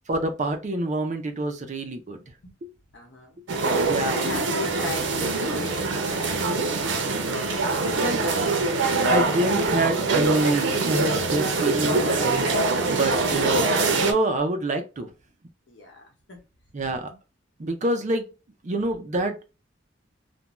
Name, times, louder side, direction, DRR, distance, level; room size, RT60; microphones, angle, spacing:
voice 1, 0.1-2.2 3.8-4.2 7.9-8.3 9.1-12.3 12.9-15.1 16.7-17.1 17.6-18.3 18.6-19.5, right 2 dB, 40° right, 0.5 m, -26 dB
voice 2, 2.9-3.4 4.0-6.3 11.8-12.4 15.7-16.4, left 2 dB, 70° left, 1.0 m, -37 dB
sound 1, 3.5-14.1, right 3 dB, 85° right, 0.6 m, -24 dB
2.5 x 2.2 x 3.0 m
head